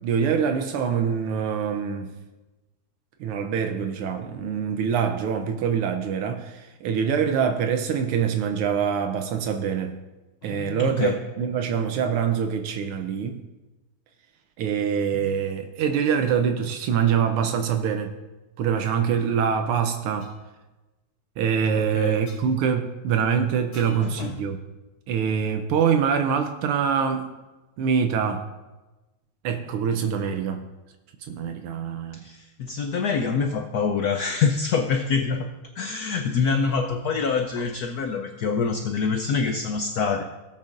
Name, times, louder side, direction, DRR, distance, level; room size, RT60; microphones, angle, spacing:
voice 1, 0.0-2.1 3.2-10.0 10.4-13.4 14.6-18.1 18.6-20.3 21.4-24.6 25.1-27.3 27.8-28.5 29.4-30.7 31.3-32.2, right 7 dB, 85° right, 6 dB, 1.6 m, -24 dB
voice 2, 10.5-11.2 21.8-22.2 24.0-24.4 32.1-35.5 35.8-40.2, left 5 dB, 90° left, 5 dB, 0.8 m, -25 dB
sound 1, 18.8-19.1 20.2-20.3 22.3-22.5 23.7-24.1, left 3 dB, 35° left, 3.0 m, -48 dB
17.5 x 8.4 x 2.5 m, 1.1 s
omnidirectional pair, 2.4 m